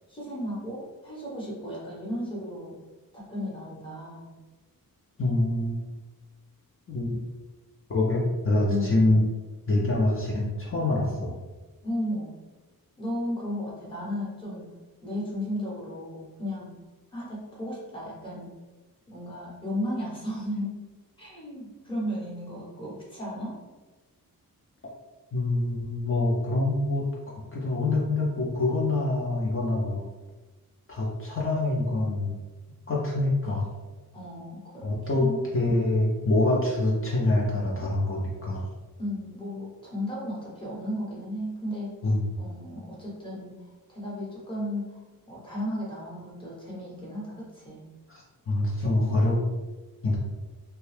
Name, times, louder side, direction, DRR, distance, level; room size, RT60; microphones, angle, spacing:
voice 1, 0.1-2.8 3.1-4.3 8.7-9.1 11.8-12.3 13.0-14.7 15.0-16.7 17.1-18.5 19.1-20.8 21.2-23.6 34.1-35.8 39.0-42.0 42.4-43.5 43.9-47.9, left 1 dB, 15° left, -7 dB, 1.0 m, -34 dB
voice 2, 5.2-5.8 6.9-7.2 7.9-9.2 9.7-11.4 25.3-27.1 27.5-30.0 30.9-32.4 32.9-33.7 34.8-38.7 42.0-42.2 48.1-49.4 50.0-50.2, left 2 dB, 35° left, -4 dB, 0.5 m, -25 dB
2.8 x 2.2 x 3.2 m, 1.2 s
wide cardioid pair, 155°, 36 cm